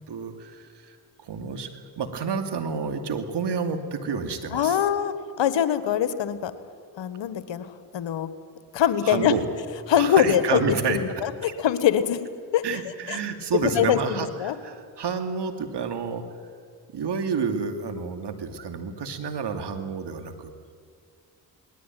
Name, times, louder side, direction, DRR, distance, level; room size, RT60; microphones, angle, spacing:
voice 1, 0.1-1.0 1.2-1.7 2.0-4.8 9.0-9.5 9.9-11.0 12.6-16.2 16.9-20.5, right 5 dB, 60° right, 6 dB, 2.6 m, -29 dB
voice 2, 4.5-6.5 7.0-8.3 8.7-9.3 9.9-12.2 12.5-12.6 13.1-13.2 13.6-14.5, left 9 dB, 65° left, 12 dB, 1.5 m, -23 dB
19.5 x 18.5 x 9.3 m, 2.1 s
hypercardioid pair, 45°, 47 cm